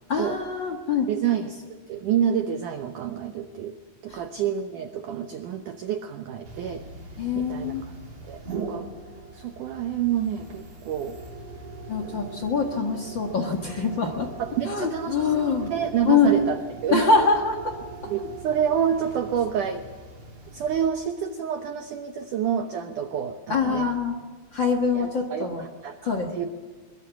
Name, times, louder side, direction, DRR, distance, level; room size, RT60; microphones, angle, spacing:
voice 1, 0.1-1.1 4.1-4.2 7.2-7.8 11.9-14.3 14.6-15.7 16.0-16.3 16.9-17.7 18.0-18.1 23.5-24.2 24.5-25.6 26.0-26.5, left 4 dB, 65° left, 2 dB, 1.1 m, -24 dB
voice 2, 1.1-6.8 7.3-7.9 8.3-8.9 9.3-11.2 14.4-15.4 15.7-17.0 18.1-19.8 20.5-23.9 24.9-26.5, right 8 dB, 85° right, 6 dB, 1.8 m, -28 dB
sound 1, 6.5-20.9, right 3 dB, 35° right, 5.4 m, -41 dB
22.5 x 22.5 x 7.1 m, 1.5 s
omnidirectional pair, 5.2 m